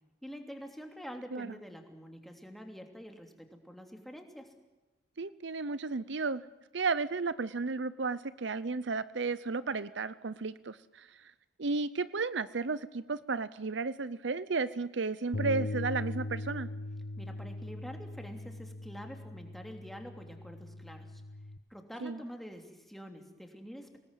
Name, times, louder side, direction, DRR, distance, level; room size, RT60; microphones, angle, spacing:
voice 1, 0.2-4.5 17.2-21.2 21.7-24.0, equal, ahead, 3 dB, 3.1 m, -46 dB
voice 2, 5.2-6.5 6.7-11.3 11.6-16.7 22.0-22.2, right 4 dB, 65° right, 16 dB, 0.7 m, -33 dB
Bass guitar, 15.3-21.6, left 2 dB, 65° left, 0.9 m, -40 dB
25.0 x 19.5 x 9.1 m, 1.1 s
head